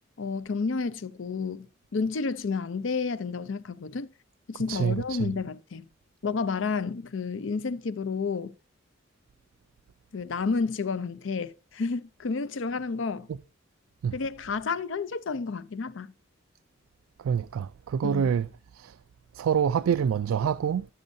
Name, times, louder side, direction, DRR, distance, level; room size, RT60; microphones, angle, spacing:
voice 1, 0.2-4.1 4.5-5.9 6.2-8.5 10.1-13.3 14.1-16.1 18.0-18.3, left 4 dB, 65° left, 0.5 m, -30 dB
voice 2, 4.7-5.3 13.3-13.4 14.0-14.2 17.2-18.5 18.7-19.0 19.3-20.9, right 7 dB, 85° right, 0.3 m, -26 dB
16.0 x 6.3 x 2.6 m
head